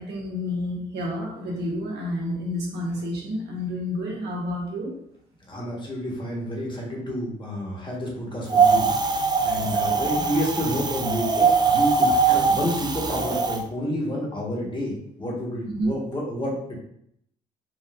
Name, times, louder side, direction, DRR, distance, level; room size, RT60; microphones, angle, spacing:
voice 1, 0.0-4.9 9.8-10.2 15.7-15.9, left 1 dB, 70° right, -1 dB, 1.1 m, -30 dB
voice 2, 5.5-8.9 9.4-16.8, equal, 25° left, -3 dB, 1.4 m, -29 dB
Wind, 8.5-13.6, right 5 dB, 25° right, 0.4 m, -22 dB
3.7 x 2.4 x 2.5 m, 0.70 s
supercardioid pair, 60°, 18 cm